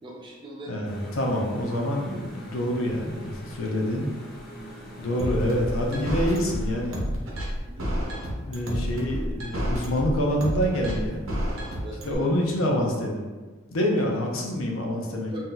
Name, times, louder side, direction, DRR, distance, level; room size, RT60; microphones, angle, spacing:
voice 1, 0.0-1.1 4.5-5.3 7.6-8.0 11.8-12.3 14.8-15.0 15.3-15.4, right 1 dB, 25° right, -3 dB, 0.5 m, -42 dB
voice 2, 0.7-4.1 5.0-7.0 7.9-8.1 8.4-11.4 12.0-13.3 13.7-15.3, equal, 85° left, 0 dB, 0.6 m, -26 dB
sound 1, 0.8-7.5, equal, 45° left, 0.7 m, -44 dB
sound 2, 5.2-12.1, equal, 80° right, 0.7 m, -29 dB
2.6 x 2.2 x 3.8 m, 1.3 s
head